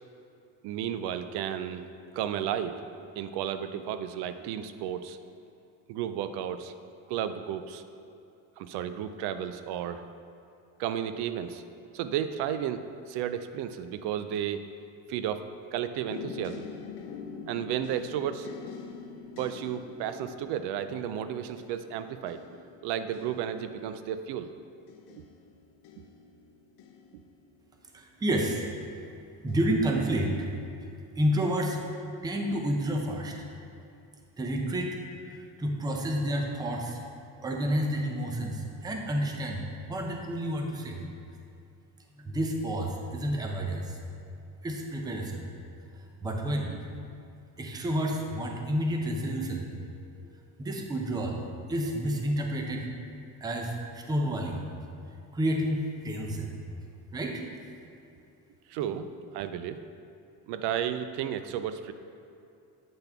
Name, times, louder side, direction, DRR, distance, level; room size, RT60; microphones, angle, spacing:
voice 1, 0.6-1.9 2.1-2.8 3.2-5.2 5.9-6.7 7.1-7.8 8.6-10.0 10.8-11.6 11.9-12.8 13.1-14.7 15.1-16.7 17.5-18.5 19.4-24.5 25.1-25.2 58.7-59.8 60.5-61.9, right 9 dB, 75° right, 11 dB, 0.5 m, -33 dB
sound 1, 16.1-27.9 28.6-29.1 29.5-29.7, left 6 dB, 70° left, 0.8 m, -45 dB
voice 2, 27.9-28.7 29.4-30.5 31.2-31.8 32.2-33.3 34.4-35.0 35.6-37.0 37.4-41.1 42.2-44.0 44.6-45.5 46.2-46.8 47.6-49.6 50.6-51.4 51.7-52.9 53.4-54.7 55.3-56.6 57.1-57.4, right 1 dB, 10° right, 2 dB, 0.5 m, -30 dB
8.8 x 5.8 x 3.4 m, 2.7 s
cardioid pair, 150°, 41 cm